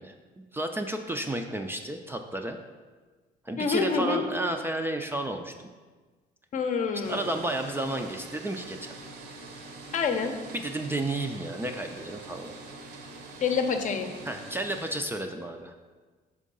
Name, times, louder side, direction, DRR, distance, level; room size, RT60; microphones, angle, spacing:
voice 1, 0.0-2.6 3.4-5.7 7.1-9.0 10.5-12.5 14.3-15.7, right 1 dB, 15° right, 4 dB, 0.4 m, -32 dB
voice 2, 3.6-4.2 6.5-7.3 9.9-10.3 13.4-14.1, left 5 dB, 50° left, 6 dB, 0.7 m, -27 dB
sound 1, 7.0-14.9, right 2 dB, 70° right, 0.9 m, -44 dB
5.9 x 3.7 x 5.3 m, 1.4 s
cardioid pair, 110°, 17 cm